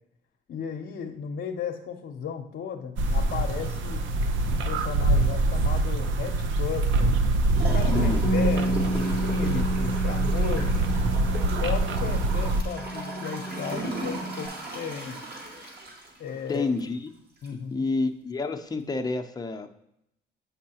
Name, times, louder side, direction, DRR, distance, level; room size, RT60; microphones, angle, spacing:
voice 1, 0.5-4.0 4.4-7.1 7.6-10.8 11.5-15.2 16.2-16.7 17.4-17.9, left 7 dB, 60° left, 1 dB, 0.7 m, -35 dB
sound 1, 3.0-12.6, right 2 dB, 70° right, 0.6 m, -25 dB
Gurgling / Toilet flush, 7.5-16.9 17.4-17.5, right 2 dB, 55° right, 2.2 m, -37 dB
voice 2, 7.9-8.2 16.5-17.1 17.5-19.8, left 3 dB, 20° left, 4 dB, 0.6 m, -29 dB
Bass guitar, 8.2-14.5, right 1 dB, 20° right, 1.4 m, -31 dB
7.3 x 5.5 x 2.9 m, 0.77 s
cardioid pair, 90°, 20 cm